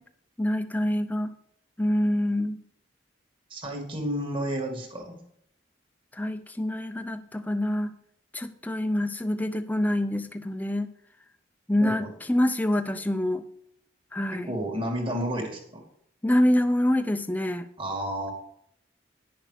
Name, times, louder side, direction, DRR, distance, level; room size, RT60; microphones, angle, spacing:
voice 1, 0.4-1.3 1.8-2.6 6.1-7.9 8.3-10.9 11.7-13.4 14.1-14.5 16.2-17.7, left 1 dB, 10° left, 8 dB, 0.6 m, -26 dB
voice 2, 3.5-5.2 11.8-12.1 14.3-15.8 17.8-18.3, equal, 30° right, 2 dB, 2.2 m, -31 dB
10.5 x 6.5 x 6.4 m, 0.71 s
head